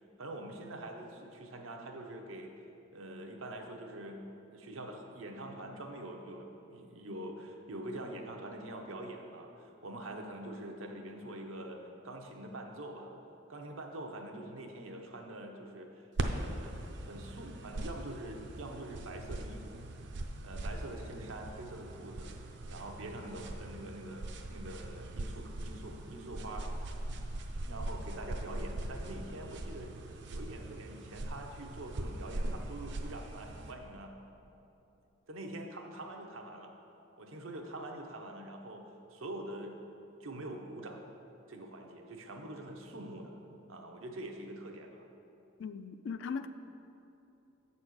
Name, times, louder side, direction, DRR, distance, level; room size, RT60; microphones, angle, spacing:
voice 1, 0.0-2.5 2.9-4.2 4.5-11.8 12.0-13.1 13.5-16.1 16.3-19.8 20.4-22.3 22.7-27.0 27.7-29.9 30.3-34.1 35.3-36.7 37.2-38.9 39.1-39.8 40.2-41.0 41.5-43.3 43.7-45.0, right 1 dB, 85° right, 2 dB, 0.8 m, -45 dB
sound 1, 16.2-33.7, right 1 dB, 60° right, 0.5 m, -41 dB
voice 2, 45.6-46.5, left 5 dB, 65° left, 10 dB, 0.3 m, -38 dB
7.5 x 4.2 x 6.2 m, 2.8 s
head